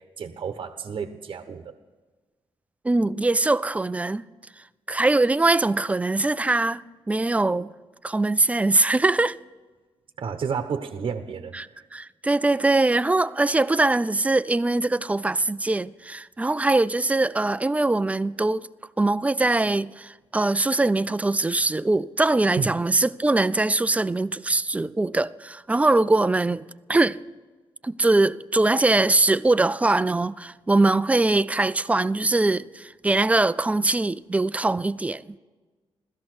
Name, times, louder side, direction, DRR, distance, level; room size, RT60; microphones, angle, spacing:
voice 1, 0.0-1.7 10.2-11.9 22.6-22.7, right 6 dB, 55° right, 1.0 m, -31 dB
voice 2, 2.8-4.2 4.9-7.7 8.0-9.4 11.5-11.7 11.9-18.7 19.0-27.2 27.8-35.4, right 2 dB, 15° right, 0.4 m, -22 dB
16.5 x 13.5 x 6.2 m
cardioid pair, 100°, 10 cm